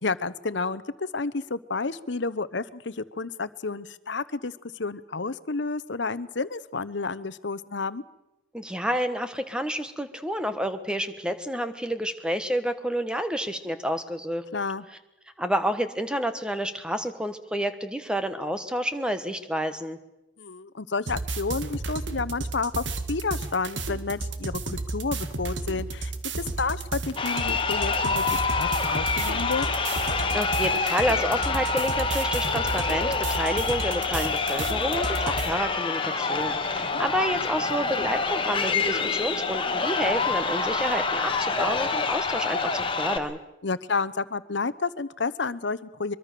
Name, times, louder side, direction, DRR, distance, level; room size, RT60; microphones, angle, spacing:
voice 1, 0.0-8.0 14.5-14.8 20.4-29.7 36.7-37.0 43.6-46.2, left 4 dB, 70° left, 16 dB, 0.9 m, -31 dB
voice 2, 8.5-14.4 15.4-20.0 30.3-43.4, equal, 5° right, 9 dB, 1.4 m, -29 dB
sound 1, 21.1-35.5, right 3 dB, 75° right, 1.8 m, -33 dB
Crowd, 27.1-43.2, left 4 dB, 25° left, 1.6 m, -27 dB
23.5 x 23.0 x 6.8 m, 0.95 s
head